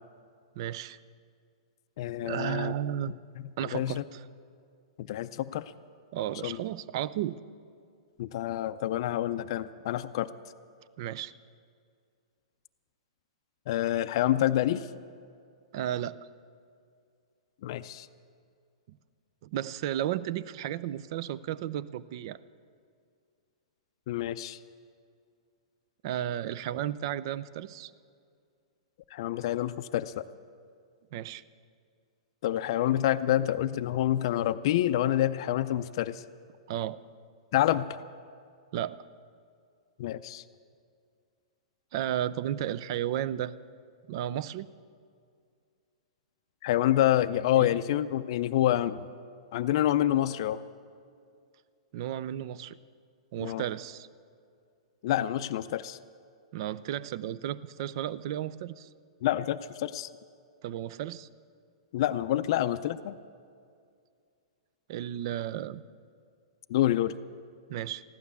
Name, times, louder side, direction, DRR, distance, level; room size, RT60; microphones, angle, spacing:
voice 1, 0.6-1.0 2.2-3.1 3.6-4.2 6.1-7.4 11.0-11.3 15.7-16.2 19.4-22.4 26.0-27.9 31.1-31.4 36.7-37.0 38.7-39.0 41.9-43.5 44.1-44.7 47.6-47.8 51.9-52.8 53.3-54.1 56.5-58.9 60.6-61.3 64.9-65.8 67.7-68.0, right 11 dB, 55° right, 17 dB, 0.5 m, -33 dB
voice 2, 2.0-2.7 3.6-4.0 5.0-5.6 6.4-6.6 8.2-10.3 13.7-14.9 17.6-18.1 24.1-24.6 29.1-30.2 32.4-36.2 37.5-38.0 40.0-40.4 46.6-49.0 49.5-50.6 53.4-53.6 55.0-56.0 59.2-60.1 61.9-63.2 66.7-67.1, left 13 dB, 55° left, 10 dB, 0.4 m, -27 dB
15.5 x 12.0 x 7.0 m, 2.3 s
hypercardioid pair, 130°, 3 cm